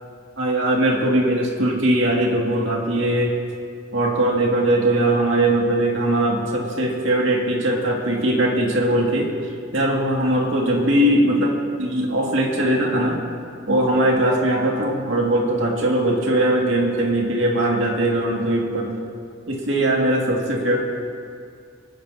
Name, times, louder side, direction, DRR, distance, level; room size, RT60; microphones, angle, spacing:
voice 1, 0.4-3.4 3.9-9.3 9.7-11.5 11.8-13.3 13.7-18.9 19.5-20.8, right 1 dB, 70° right, -1 dB, 2.1 m, -20 dB
25.5 x 10.0 x 2.8 m, 2.2 s
head